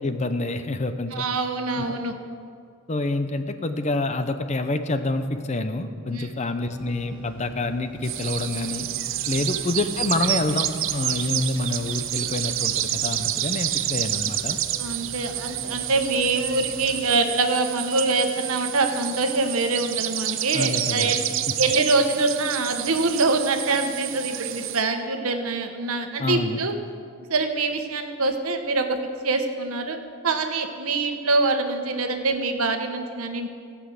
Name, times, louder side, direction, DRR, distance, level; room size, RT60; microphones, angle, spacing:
voice 1, 0.0-1.2 1.9-2.0 2.9-8.9 9.3-14.6 20.5-21.2 26.2-26.6, left 2 dB, 30° left, 9 dB, 0.6 m, -27 dB
voice 2, 1.1-2.1 6.1-6.3 14.8-21.2 21.6-26.7 27.3-28.9 29.2-30.0 30.2-33.5, right 3 dB, 85° right, 6 dB, 1.2 m, -24 dB
sound 1, 6.6-17.0, equal, 20° right, 1.3 m, -43 dB
sound 2, 8.0-24.8, right 12 dB, 65° right, 0.5 m, -29 dB
15.5 x 6.1 x 7.9 m, 2.2 s
head